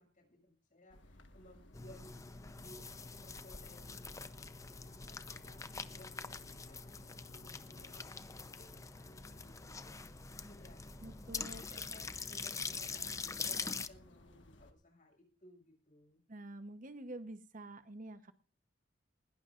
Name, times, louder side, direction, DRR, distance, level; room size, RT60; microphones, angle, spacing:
voice 1, 0.0-10.8 11.5-16.2, left 1 dB, 45° left, 3 dB, 7.1 m, -61 dB
sound 1, 0.9-14.7, left 1 dB, 85° left, 1.5 m, -58 dB
sound 2, 1.7-13.9, left 4 dB, 15° left, 0.6 m, -44 dB
voice 2, 11.0-11.6 16.3-18.3, right 1 dB, 45° right, 10 dB, 1.0 m, -47 dB
20.5 x 17.5 x 2.5 m, 0.37 s
head